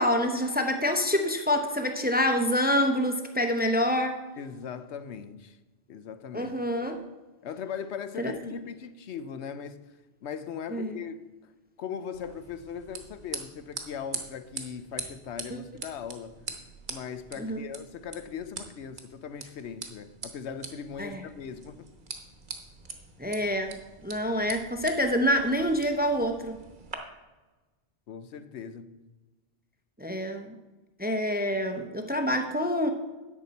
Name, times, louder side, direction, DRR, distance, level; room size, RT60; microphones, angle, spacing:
voice 1, 0.0-4.2 6.3-7.0 8.2-8.3 10.7-11.0 17.4-17.6 21.0-21.2 23.2-26.6 30.0-30.5 31.0-32.9, equal, 10° right, 0.5 m, -27 dB
voice 2, 4.4-5.6 5.9-6.6 7.4-9.8 10.2-11.2 11.4-11.5 11.8-16.4 16.9-21.9 28.1-28.9, left 7 dB, 85° left, 1.0 m, -39 dB
sound 1, 12.1-27.0, right 4 dB, 50° right, 1.2 m, -43 dB
11.0 x 8.2 x 4.1 m
omnidirectional pair, 1.1 m